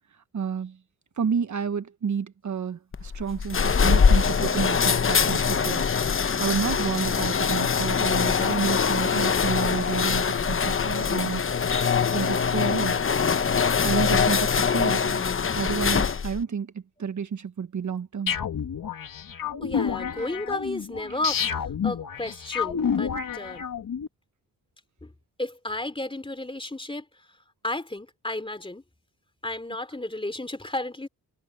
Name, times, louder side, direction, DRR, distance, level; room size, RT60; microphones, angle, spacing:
voice 1, 0.3-0.8 1.2-5.8 6.4-11.5 12.1-13.0 13.8-15.2 15.5-18.4, right 6 dB, 55° right, 1.3 m, -30 dB
sound 1, 2.9-16.4, left 6 dB, 35° left, 1.0 m, -23 dB
sound 2, 18.3-24.1, left 7 dB, 65° left, 2.5 m, -29 dB
voice 2, 19.6-23.6 25.0-25.1 25.4-27.0 27.6-28.8 29.4-31.1, left 2 dB, 15° left, 3.3 m, -33 dB
cardioid pair, 75°, 36 cm